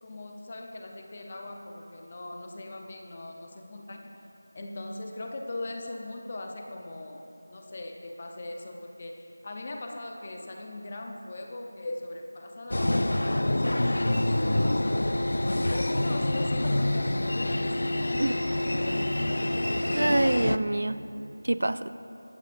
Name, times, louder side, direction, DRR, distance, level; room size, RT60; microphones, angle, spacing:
voice 1, 0.0-4.2 4.5-15.1 15.7-18.4, left 2 dB, 20° left, 3 dB, 0.6 m, -40 dB
sound 1, 12.7-20.6, left 1 dB, 70° left, 0.5 m, -26 dB
voice 2, 19.9-21.1 21.4-21.9, right 1 dB, 55° right, 13 dB, 0.5 m, -26 dB
22.0 x 15.0 x 2.6 m, 2.8 s
figure-of-eight pair, 180°, 0 cm